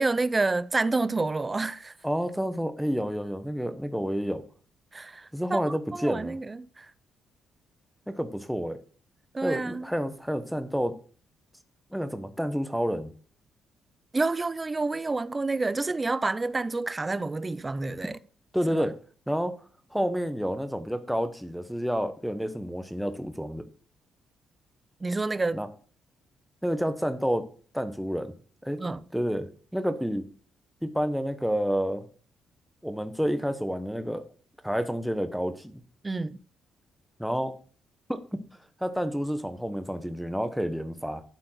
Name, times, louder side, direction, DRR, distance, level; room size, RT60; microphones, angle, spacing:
voice 1, 0.0-1.9 4.9-5.6 5.9-6.9 9.3-9.9 14.1-18.2 18.7-18.9 25.0-25.6 28.8-29.1 36.0-36.4, right 3 dB, 25° right, 0.5 m, -28 dB
voice 2, 2.0-4.4 5.3-6.3 8.1-8.8 9.4-10.9 11.9-13.1 18.5-18.9 19.3-19.5 19.9-23.6 25.5-25.7 26.6-27.4 27.7-28.3 28.6-28.8 29.1-30.2 30.8-32.1 32.8-34.2 34.6-35.8 37.2-37.5 38.1-38.2 38.8-41.2, equal, ahead, 1.1 m, -29 dB
12.0 x 4.4 x 5.7 m
cardioid pair, 90°, 0 cm